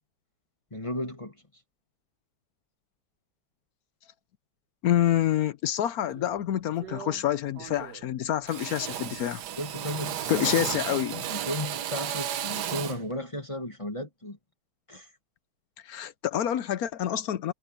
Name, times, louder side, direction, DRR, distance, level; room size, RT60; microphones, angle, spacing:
voice 1, 0.7-1.4 9.6-10.7 11.2-14.4 14.9-15.1, left 1 dB, 15° left, 1.7 m, -35 dB
voice 2, 4.8-9.4 10.3-11.2 15.9-17.5, left 11 dB, 70° left, 0.9 m, -27 dB
Drill, 6.2-6.4 6.8-7.3 7.6-8.1 8.5-13.1, right 11 dB, 60° right, 1.2 m, -34 dB
omnidirectional pair, 2.3 m